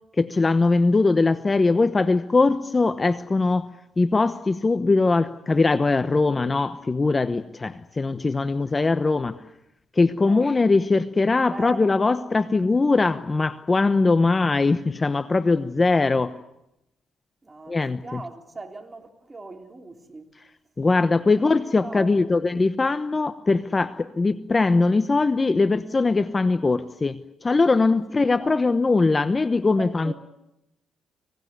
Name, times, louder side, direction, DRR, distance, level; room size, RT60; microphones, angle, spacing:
voice 1, 0.2-3.7 4.0-9.4 9.9-16.3 17.7-18.2 20.8-30.1, left 3 dB, 25° left, 0.9 m, -21 dB
voice 2, 11.4-11.9 17.4-20.4 21.3-21.5 21.8-22.3 28.1-28.6 29.8-30.1, right 3 dB, 20° right, 3.7 m, -39 dB
26.0 x 18.5 x 9.5 m
cardioid pair, 90°, 0 cm